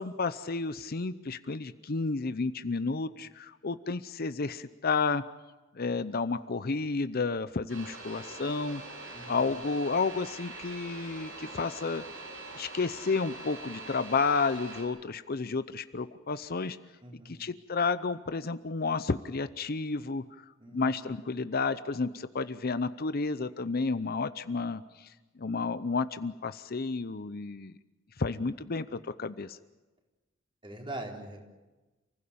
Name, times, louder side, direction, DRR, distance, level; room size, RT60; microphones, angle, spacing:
voice 1, 0.0-5.3 5.7-8.8 9.3-12.0 12.5-16.8 17.3-20.2 20.7-25.1 25.4-27.7 28.2-29.6, left 4 dB, 50° left, 13 dB, 0.7 m, -31 dB
sound 1, 7.7-14.8, right 2 dB, 90° right, 7.8 m, -44 dB
voice 2, 9.1-9.5 17.0-17.4 20.6-21.2 30.6-31.5, right 1 dB, 25° right, 0 dB, 4.0 m, -43 dB
29.5 x 16.0 x 8.7 m, 1.1 s
head